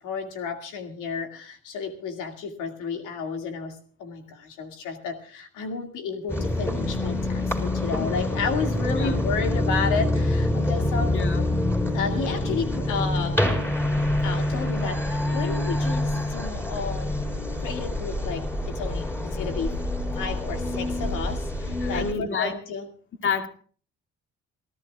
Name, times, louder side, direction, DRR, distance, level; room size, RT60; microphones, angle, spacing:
voice 1, 0.0-11.2 11.9-13.4 14.2-17.2 17.6-19.8 20.1-22.9, left 5 dB, 90° left, 2.3 m, -32 dB
sound 1, 6.3-22.1, left 1 dB, 10° left, 4.3 m, -26 dB
voice 2, 11.1-11.4 21.8-22.5 23.2-23.5, left 5 dB, 40° left, 2.4 m, -28 dB
28.0 x 14.5 x 2.4 m
cardioid pair, 90°, 30 cm